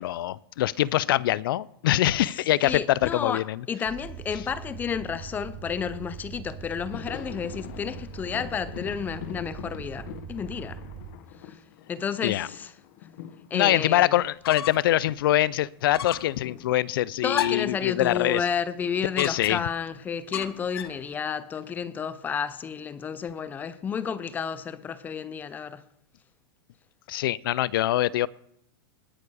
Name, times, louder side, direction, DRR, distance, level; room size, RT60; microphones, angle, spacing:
voice 1, 0.0-3.6 12.2-12.5 13.5-18.4 19.2-19.6 27.1-28.3, left 14 dB, 70° left, 0.4 m, -24 dB
voice 2, 2.6-3.4 3.7-10.8 11.4-11.6 11.9-12.7 13.5-14.2 17.2-25.8, left 7 dB, 15° left, 0.5 m, -31 dB
sound 1, 3.9-11.2, right 7 dB, 30° right, 1.2 m, -41 dB
Thunder, 6.5-15.3 15.6-19.9 20.1-20.3 21.5-22.2, left 10 dB, 50° left, 1.0 m, -45 dB
sound 2, 14.2-15.0 15.3-15.4 15.9-16.4 17.3-17.8 19.2-19.8 20.3-21.0, left 10 dB, 85° left, 0.9 m, -33 dB
19.5 x 6.9 x 4.9 m
supercardioid pair, 150°, 12 cm